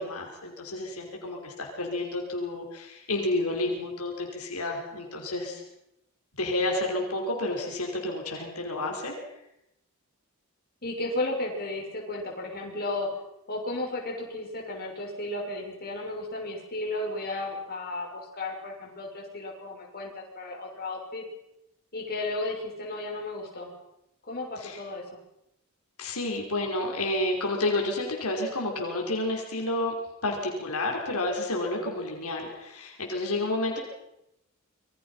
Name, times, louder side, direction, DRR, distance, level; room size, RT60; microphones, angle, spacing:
voice 1, 0.0-5.6 6.3-9.2 24.6-24.8 26.0-29.9 30.2-33.8, left 2 dB, 80° left, 1 dB, 5.3 m, -30 dB
voice 2, 10.8-13.1 13.5-21.2 21.9-23.7 24.3-25.0, left 2 dB, 45° left, -1 dB, 6.7 m, -34 dB
27.0 x 23.5 x 5.8 m, 0.85 s
head